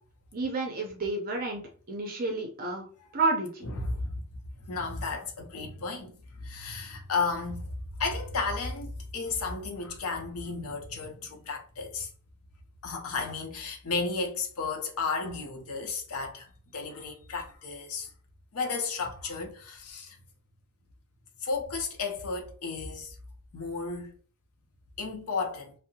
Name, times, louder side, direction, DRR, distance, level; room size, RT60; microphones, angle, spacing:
voice 1, 0.3-1.6 1.9-2.9 3.1-3.7, right 3 dB, 40° right, 0.5 m, -30 dB
voice 2, 3.6-4.2 4.6-7.7 8.0-12.1 12.8-18.1 18.5-20.2 21.4-23.2 23.5-24.1 25.0-25.7, left 4 dB, 70° left, 0.6 m, -33 dB
2.6 x 2.0 x 2.8 m
head